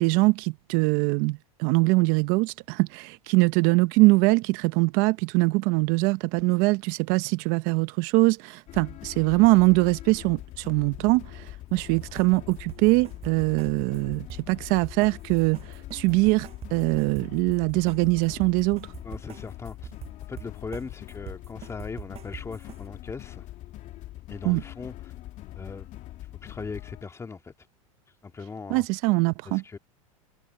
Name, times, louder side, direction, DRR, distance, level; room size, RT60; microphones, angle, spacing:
voice 1, 0.0-18.9 24.4-24.6 28.7-29.8, right 24 dB, 55° right, 0.9 m, -23 dB
sound 1, 8.7-27.0, left 15 dB, 45° left, 2.4 m, -43 dB
sound 2, 11.8-22.9, right 11 dB, 35° right, 6.3 m, -44 dB
voice 2, 19.0-19.9 20.3-23.5 24.3-25.1 25.5-25.9 26.4-27.5 28.2-28.8 29.5-29.8, left 4 dB, 15° left, 2.1 m, -39 dB
supercardioid pair, 115°, 18 cm